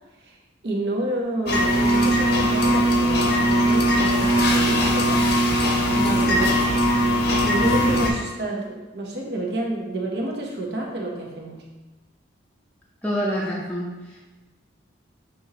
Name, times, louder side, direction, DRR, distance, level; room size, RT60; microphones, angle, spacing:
voice 1, 0.6-5.4 6.3-6.5 7.4-11.7, right 1 dB, 60° right, -1 dB, 0.8 m, -29 dB
sound 1, 1.5-8.1, equal, 55° left, 0.7 m, -20 dB
voice 2, 6.0-6.3 13.0-14.2, equal, 5° left, -6 dB, 0.5 m, -27 dB
6.2 x 2.9 x 2.8 m, 1.2 s
head